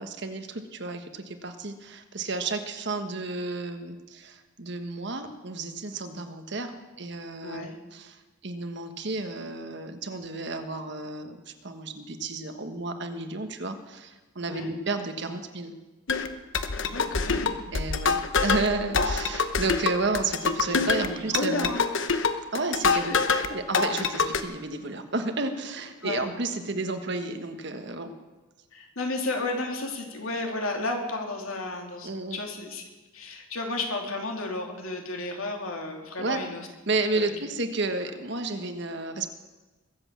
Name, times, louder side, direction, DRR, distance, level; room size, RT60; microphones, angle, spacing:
voice 1, 0.0-6.7 7.0-15.7 17.7-21.7 22.5-28.1 32.0-32.4 36.2-36.4 36.9-39.3, right 3 dB, 55° right, 7 dB, 1.3 m, -32 dB
voice 2, 7.4-7.8 14.4-14.7 16.8-17.6 21.1-21.8 22.9-23.2 26.0-26.3 28.7-32.8 33.1-36.7 37.1-37.3, left 2 dB, 85° left, 2 dB, 2.8 m, -32 dB
sound 1, 16.1-23.5 23.7-24.4, left 4 dB, 65° left, 1.0 m, -26 dB
22.0 x 8.0 x 7.4 m, 1.2 s
head